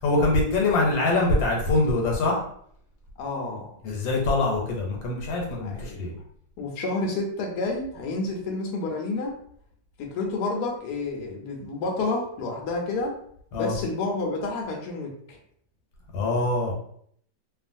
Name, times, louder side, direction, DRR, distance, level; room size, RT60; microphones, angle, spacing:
voice 1, 0.0-2.4 3.8-6.1 13.5-13.7 16.1-16.7, left 2 dB, 85° left, -1 dB, 1.5 m, -24 dB
voice 2, 3.2-3.7 5.6-6.2 6.6-9.3 10.0-13.1 13.6-15.4, left 3 dB, 65° left, 0 dB, 1.1 m, -30 dB
2.9 x 2.4 x 2.5 m, 0.64 s
omnidirectional pair, 2.0 m